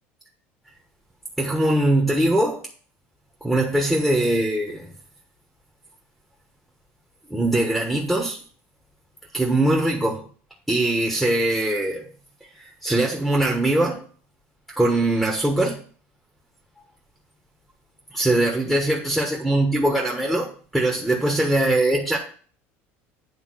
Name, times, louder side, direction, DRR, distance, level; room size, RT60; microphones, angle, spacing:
voice 1, 1.4-2.6 3.4-4.9 7.3-8.4 9.3-10.2 10.7-12.0 12.6-14.0 14.8-15.8 18.1-22.2, right 1 dB, 5° right, -2 dB, 1.3 m, -21 dB
9.4 x 3.4 x 6.3 m, 0.44 s
supercardioid pair, 125°, 6 cm